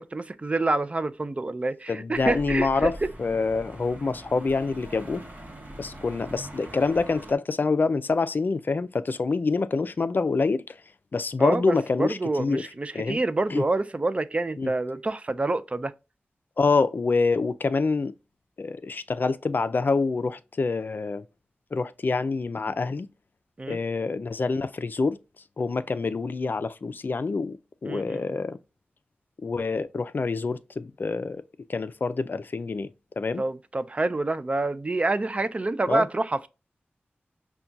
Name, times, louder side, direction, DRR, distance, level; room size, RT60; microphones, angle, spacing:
voice 1, 0.0-2.9 11.4-15.9 23.6-23.8 27.9-28.4 33.4-36.5, right 2 dB, 35° right, 0.4 m, -27 dB
voice 2, 1.9-5.2 5.8-10.6 11.1-12.7 12.9-13.2 13.5-13.6 14.6-14.7 16.6-18.1 18.6-21.2 21.7-23.1 23.7-25.2 25.6-27.6 27.8-28.6 29.4-31.4 31.7-32.9 33.2-33.4 35.9-36.1, left 4 dB, 55° left, 0.4 m, -26 dB
sound 1, 2.1-7.3, equal, 50° right, 1.0 m, -42 dB
5.7 x 2.3 x 2.5 m
wide cardioid pair, 75°, 4 cm